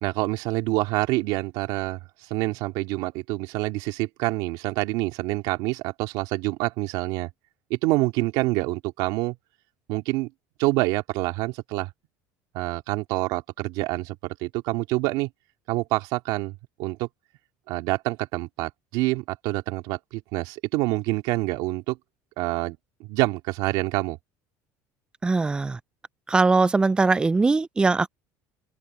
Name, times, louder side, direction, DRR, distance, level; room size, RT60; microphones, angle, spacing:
voice 1, 0.0-7.3 7.7-9.4 9.9-10.3 10.6-11.9 12.5-15.3 15.7-17.1 17.7-22.0 22.4-24.2, right 20 dB, 75° right, 2.5 m, -27 dB
voice 2, 25.2-25.8 26.3-28.1, right 3 dB, 10° right, 0.3 m, -21 dB
open air
cardioid pair, 135°, 7 cm